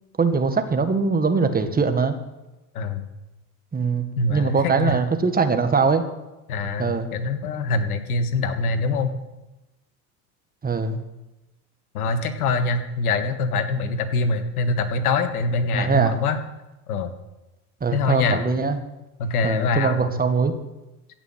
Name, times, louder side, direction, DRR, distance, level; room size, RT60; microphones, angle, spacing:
voice 1, 0.2-2.2 3.7-6.0 6.8-7.1 10.6-11.0 15.7-16.2 17.8-18.8 19.4-20.5, right 4 dB, 20° right, 7 dB, 1.6 m, -22 dB
voice 2, 4.2-5.0 6.5-9.1 11.9-16.4 16.9-17.1 17.9-18.4 19.2-20.2, left 3 dB, 80° left, 8 dB, 1.6 m, -24 dB
16.0 x 6.0 x 7.9 m, 1.0 s
hypercardioid pair, 80°, 44 cm